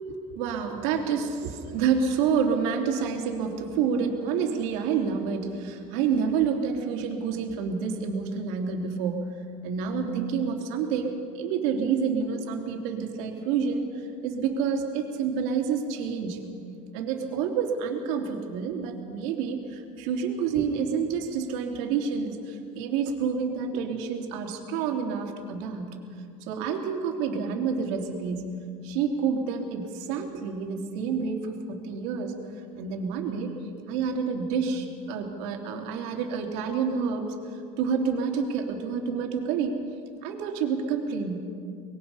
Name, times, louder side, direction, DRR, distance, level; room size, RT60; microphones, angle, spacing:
voice 1, 0.0-9.2 9.6-16.4 16.9-25.9 26.4-28.5 28.8-33.5 33.9-39.8 40.2-41.4, right 6 dB, 70° right, 2 dB, 3.1 m, -28 dB
24.5 x 21.0 x 5.6 m, 2.4 s
cardioid pair, 155°, 16 cm